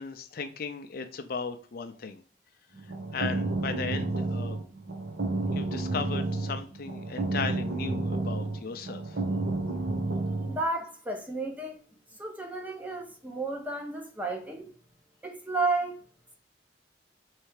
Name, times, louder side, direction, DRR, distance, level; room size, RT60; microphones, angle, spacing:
voice 1, 0.0-2.2 3.1-4.6 5.5-9.2, left 5 dB, 55° left, 0.4 m, -36 dB
sound 1, 2.7-10.6, right 2 dB, 80° right, 1.2 m, -31 dB
voice 2, 10.5-11.8 12.2-14.7 15.2-16.0, right 3 dB, 10° right, 0.7 m, -32 dB
3.3 x 3.3 x 4.7 m
head